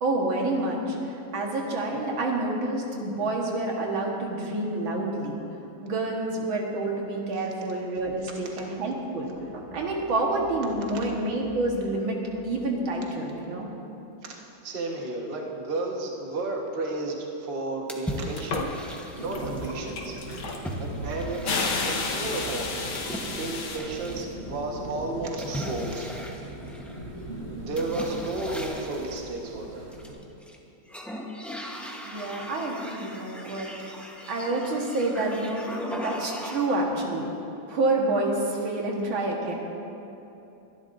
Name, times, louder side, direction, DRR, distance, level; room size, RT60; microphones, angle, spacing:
voice 1, 0.0-5.4 5.8-12.2 12.4-13.7 32.0-34.0 34.3-35.7 36.0-37.3 37.7-39.5, right 2 dB, 85° right, -1 dB, 2.3 m, -28 dB
voice 2, 14.3-18.7 19.2-20.2 20.8-22.9 23.3-26.1 27.5-29.9, right 2 dB, 30° right, -1 dB, 1.3 m, -33 dB
sound 1, 17.9-19.7 20.6-21.9 22.9-24.3 25.4-27.1 27.7-29.3 29.9-30.5 30.9-36.9, equal, ahead, 0.3 m, -38 dB
sound 2, 18.4-19.0 19.3-23.8, left 4 dB, 90° left, 2.0 m, -31 dB
sound 3, 19.1-30.1, right 1 dB, 50° right, 4.1 m, -39 dB
23.0 x 11.5 x 2.6 m, 3.0 s
omnidirectional pair, 2.1 m